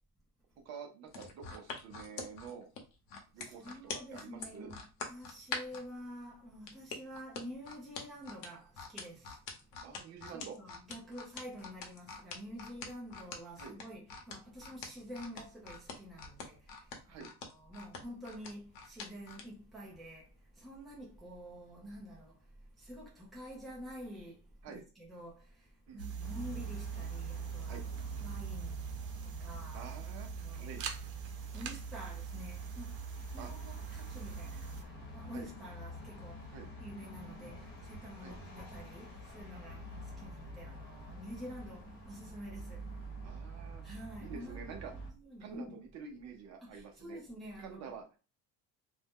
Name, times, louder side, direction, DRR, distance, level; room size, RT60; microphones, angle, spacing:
voice 1, 0.6-2.7 3.3-4.7 9.8-10.6 13.6-13.8 17.1-17.3 24.6-24.8 25.9-26.1 27.7-27.8 29.7-30.8 33.4-33.5 35.3-35.5 36.5-36.7 38.2-38.3 43.2-43.8 44.2-44.9 45.4-47.2 47.6-48.2, right 6 dB, 45° right, 0.7 m, -48 dB
sound 1, 1.1-5.8 6.7-19.5 19.9-20.1, left 5 dB, 60° left, 0.9 m, -44 dB
voice 2, 3.4-9.8 10.3-27.8 28.2-29.9 30.3-30.7 31.5-36.5 36.8-43.1 43.8-44.6 44.9-45.8 46.6-47.9, equal, ahead, 0.6 m, -48 dB
sound 2, 26.0-34.8, right 7 dB, 85° right, 0.7 m, -42 dB
sound 3, 26.2-45.1, right 1 dB, 30° left, 0.9 m, -48 dB
2.6 x 2.1 x 3.5 m
cardioid pair, 160°, 37 cm